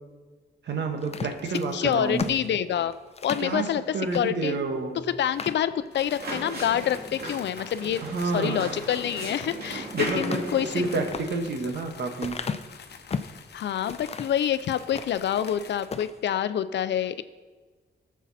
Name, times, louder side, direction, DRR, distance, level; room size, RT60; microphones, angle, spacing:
voice 1, 0.6-2.3 3.4-3.7 3.9-5.0 8.0-8.7 9.9-10.4 10.7-12.4, right 3 dB, 80° right, 4 dB, 1.6 m, -29 dB
sound 1, 1.0-3.5 4.1-4.3 4.7-4.8 5.2-6.1 6.6-7.1 8.9-9.6 10.1-13.4 13.9-14.4 14.8-15.6 15.9-16.2, left 5 dB, 35° left, 0.5 m, -36 dB
voice 2, 1.7-2.9 3.2-4.6 5.1-10.8 13.5-17.2, left 10 dB, 90° left, 13 dB, 0.5 m, -27 dB
sound 2, 5.9-15.9, left 6 dB, 75° left, 0.9 m, -47 dB
sound 3, 6.1-11.1, right 1 dB, 65° right, 2.7 m, -36 dB
17.5 x 7.3 x 4.2 m, 1.4 s
wide cardioid pair, 105°, 18 cm